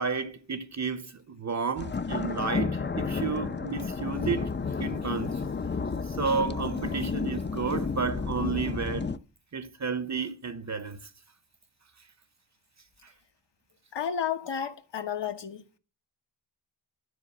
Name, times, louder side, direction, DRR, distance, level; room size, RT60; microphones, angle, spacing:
voice 1, 0.0-4.5 4.8-5.5 6.1-9.1 9.5-11.1, right 5 dB, 40° right, 0.8 m, -32 dB
sound 1, 1.8-9.2, left 4 dB, 25° left, 0.5 m, -31 dB
voice 2, 13.9-15.6, left 8 dB, 70° left, 1.3 m, -32 dB
12.5 x 5.0 x 8.4 m
wide cardioid pair, 135°, 44 cm